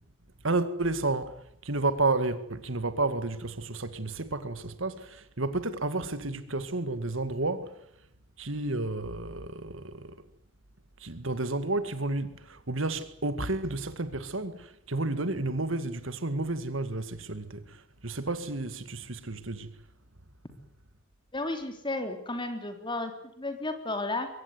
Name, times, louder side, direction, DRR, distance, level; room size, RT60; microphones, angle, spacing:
voice 1, 0.4-1.3 1.6-7.8 8.4-10.2 11.0-19.7, right 2 dB, 70° right, 2.0 m, -31 dB
voice 2, 21.3-23.1 23.4-24.3, left 2 dB, 25° left, 3.4 m, -33 dB
23.0 x 17.5 x 9.7 m
head